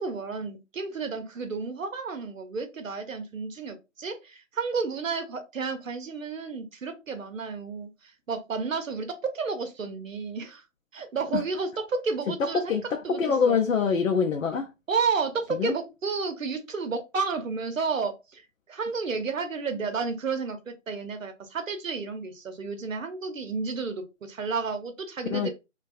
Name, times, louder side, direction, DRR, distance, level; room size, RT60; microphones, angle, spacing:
voice 1, 0.0-10.6 10.9-13.6 14.9-25.5, right 4 dB, 80° right, 0.7 m, -31 dB
voice 2, 12.3-14.7 15.6-15.8 25.3-25.5, left 6 dB, 85° left, 0.5 m, -25 dB
2.5 x 2.2 x 2.2 m
figure-of-eight pair, 175°, 39 cm